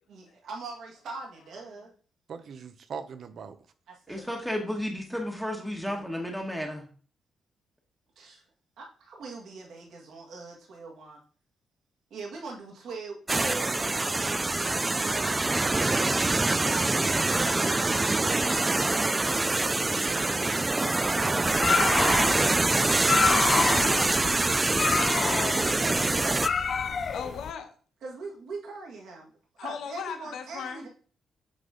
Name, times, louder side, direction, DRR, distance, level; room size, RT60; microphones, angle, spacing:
voice 1, 0.1-1.9 3.9-4.7 8.2-8.4 8.8-11.2 12.1-15.5 15.8-18.1 22.2-23.1 25.3-26.4 28.0-29.3 29.6-30.9, right 3 dB, 75° right, 1.8 m, -42 dB
voice 2, 2.3-3.6 5.9-6.0 17.3-18.7 20.1-21.5, right 6 dB, 60° right, 0.7 m, -42 dB
voice 3, 4.1-6.9, left 1 dB, 5° right, 1.3 m, -33 dB
sound 1, 13.3-26.5, right 2 dB, 20° right, 0.3 m, -25 dB
sound 2, 21.4-27.5, left 5 dB, 45° left, 0.5 m, -28 dB
voice 4, 23.2-24.2 27.1-27.7 29.6-30.9, left 7 dB, 80° left, 1.1 m, -38 dB
8.1 x 4.0 x 3.8 m
cardioid pair, 100°, 0 cm